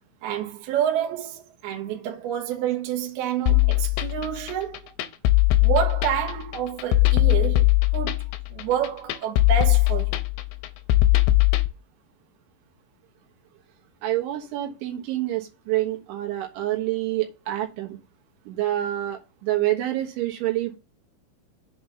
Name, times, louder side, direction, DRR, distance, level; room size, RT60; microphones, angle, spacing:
voice 1, 0.2-4.9 5.6-8.2 8.5-10.2, right 9 dB, 65° right, 3.0 m, -28 dB
sound 1, 3.5-11.7, left 18 dB, 80° left, 2.8 m, -20 dB
voice 2, 14.0-18.0 18.5-20.8, right 14 dB, 85° right, 3.8 m, -27 dB
7.7 x 4.1 x 6.9 m
omnidirectional pair, 5.3 m